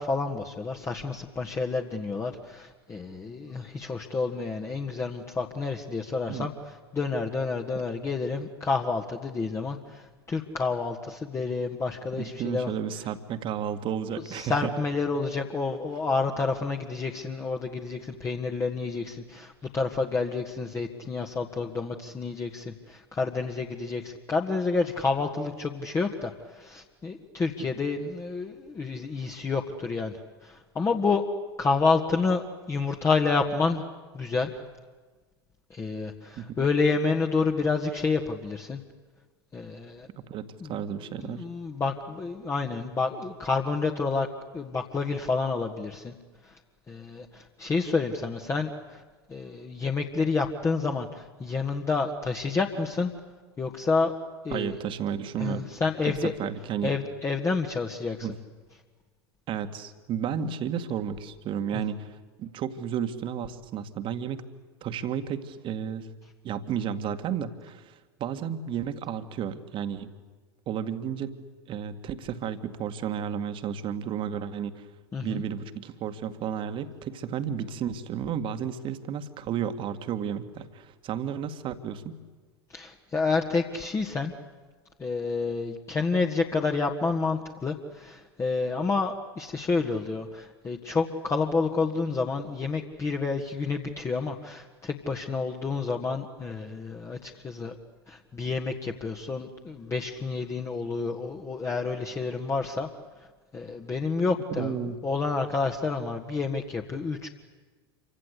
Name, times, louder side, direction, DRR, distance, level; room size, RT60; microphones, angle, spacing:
voice 1, 0.0-6.5 6.9-12.7 14.3-31.2 31.6-33.8 34.1-34.5 35.7-38.8 39.5-40.1 40.6-40.7 41.2-44.3 44.5-46.1 46.5-46.6 46.9-49.0 49.3-53.1 53.6-54.1 54.4-54.8 55.4-56.3 56.8-58.3 61.7-61.8 75.1-75.4 82.7-84.3 85.0-97.8 98.1-102.9 103.5-104.8 105.0-107.3, left 4 dB, 20° left, 2 dB, 1.9 m, -29 dB
voice 2, 12.2-14.7 36.4-36.7 40.3-41.5 54.5-55.7 56.1-57.0 58.2-58.4 59.5-62.1 62.4-64.4 64.8-66.1 66.4-70.1 70.7-71.4 71.7-74.9 75.2-82.1 104.5-105.0, right 8 dB, 40° right, 9 dB, 2.1 m, -32 dB
28.0 x 25.0 x 8.5 m, 1.4 s
figure-of-eight pair, 80°, 13 cm